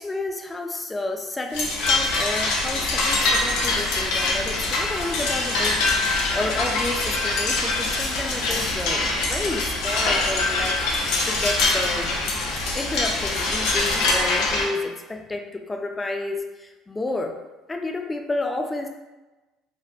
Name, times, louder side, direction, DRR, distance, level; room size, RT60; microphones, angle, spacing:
voice 1, 0.0-12.1 12.6-17.4 17.7-18.9, left 2 dB, 20° left, 4 dB, 0.3 m, -31 dB
sound 1, 1.5-14.6, left 2 dB, 75° left, 0.5 m, -24 dB
2.8 x 2.1 x 2.4 m, 1.1 s
supercardioid pair, 80°, 0 cm